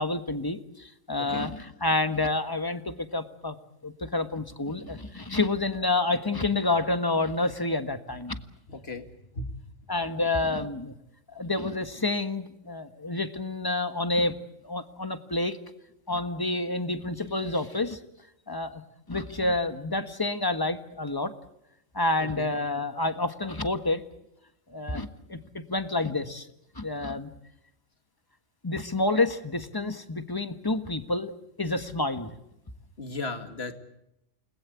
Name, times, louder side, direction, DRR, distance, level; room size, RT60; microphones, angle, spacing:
voice 1, 0.0-3.6 3.8-8.4 9.9-10.9 11.3-14.3 14.6-15.6 16.1-18.0 18.5-18.8 19.1-21.3 21.9-24.0 24.7-26.5 26.7-27.3 28.6-31.3 31.6-32.3, left 2 dB, 15° left, 9 dB, 1.4 m, -28 dB
voice 2, 8.7-9.1 9.3-9.5 22.2-22.5 33.0-33.7, left 3 dB, 50° left, 7 dB, 2.5 m, -36 dB
29.0 x 20.5 x 8.4 m, 0.85 s
omnidirectional pair, 1.4 m